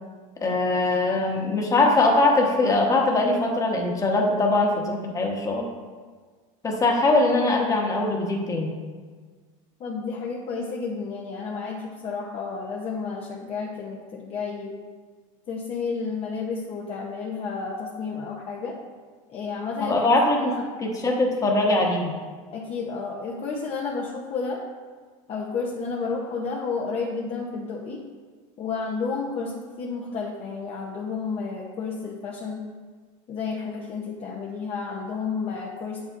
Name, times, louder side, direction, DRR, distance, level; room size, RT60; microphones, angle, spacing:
voice 1, 0.4-5.7 6.6-8.7 19.8-20.5 20.8-22.1, left 2 dB, 20° left, 0 dB, 1.2 m, -22 dB
voice 2, 9.8-14.8 15.5-18.8 19.3-20.0 20.4-20.7 22.5-24.6 25.3-28.0 28.6-32.6 33.3-36.1, left 4 dB, 35° left, -2 dB, 0.8 m, -31 dB
8.0 x 7.3 x 2.5 m, 1.5 s
supercardioid pair, 125°, 17 cm